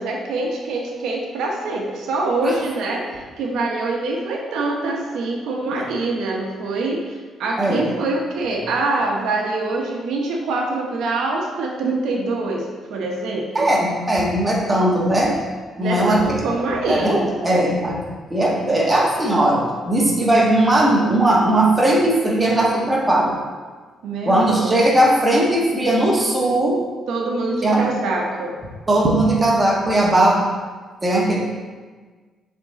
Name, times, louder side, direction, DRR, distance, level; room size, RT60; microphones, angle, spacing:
voice 1, 0.0-3.0 3.4-13.7 15.8-17.3 24.0-24.8 27.1-28.5, right 2 dB, 80° right, 0 dB, 1.0 m, -24 dB
voice 2, 7.6-7.9 13.5-15.3 15.8-16.4 16.9-18.0 18.3-23.4 24.2-26.8 27.6-27.8 28.9-30.4 31.0-31.4, right 1 dB, 20° right, -2 dB, 1.5 m, -18 dB
7.1 x 3.7 x 4.0 m, 1.4 s
cardioid pair, 90°, 0 cm